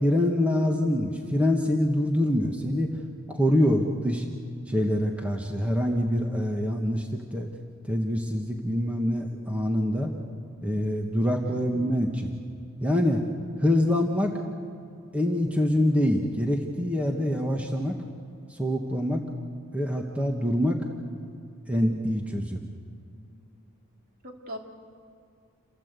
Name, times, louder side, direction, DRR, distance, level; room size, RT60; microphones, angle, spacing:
voice 1, 0.0-2.9 3.3-4.3 4.7-7.5 7.8-10.1 10.6-12.3 12.8-13.2 13.6-14.4 15.1-18.0 18.5-19.3 19.7-20.8 21.7-22.6, left 1 dB, 5° right, 1 dB, 1.4 m, -25 dB
voice 2, 11.4-12.0 24.2-24.6, equal, 45° right, 1 dB, 2.9 m, -41 dB
28.5 x 16.5 x 8.2 m, 2.5 s
head